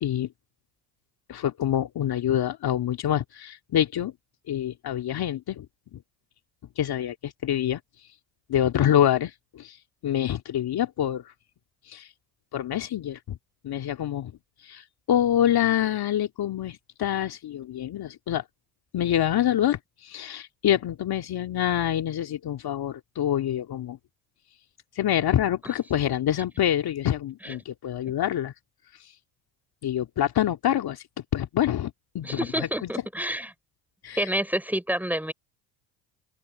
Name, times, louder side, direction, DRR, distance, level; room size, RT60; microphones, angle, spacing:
voice 1, 1.3-4.1 4.5-5.7 5.9-6.0 6.8-7.8 8.5-9.8 10.0-11.3 11.9-12.1 12.5-13.4 13.6-14.3 14.6-18.4 18.9-24.0 25.0-28.5 29.8-31.0 31.3-32.7 34.0-34.3, left 11 dB, 50° left, 2.4 m, -26 dB
voice 2, 32.2-33.5 34.2-35.3, right 1 dB, 5° right, 6.0 m, -28 dB
open air
hypercardioid pair, 70°, 47 cm